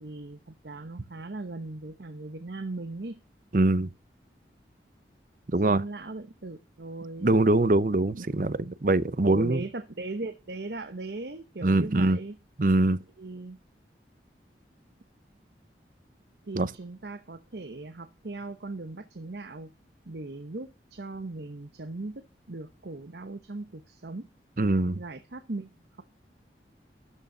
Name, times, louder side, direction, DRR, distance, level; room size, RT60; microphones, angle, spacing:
voice 1, 0.0-3.2 5.6-7.4 8.1-8.7 9.2-12.4 13.2-13.6 16.4-19.7 20.1-24.3 25.0-26.0, right 2 dB, 70° right, 0.9 m, -39 dB
voice 2, 3.5-3.9 5.5-5.8 7.2-9.6 11.6-12.2 12.6-13.0 16.6-16.7 24.6-25.0, right 2 dB, 50° right, 0.8 m, -23 dB
13.0 x 6.5 x 5.5 m
head